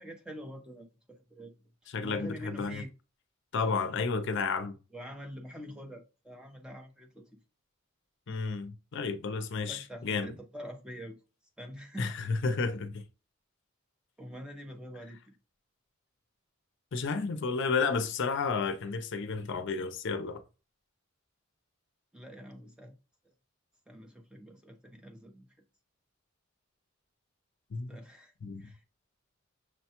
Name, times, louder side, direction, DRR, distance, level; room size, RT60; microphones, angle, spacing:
voice 1, 0.0-1.5 2.0-2.9 4.9-7.2 9.6-11.2 11.6-12.3 14.2-15.3 17.1-17.2 22.1-22.9 23.9-25.5 27.9-28.8, equal, 5° right, 0.6 m, -45 dB
voice 2, 1.9-2.8 3.5-4.7 8.3-10.3 12.0-13.0 16.9-20.4 27.7-27.9 28.4-28.6, left 4 dB, 60° left, 0.5 m, -32 dB
6.2 x 2.2 x 2.9 m
head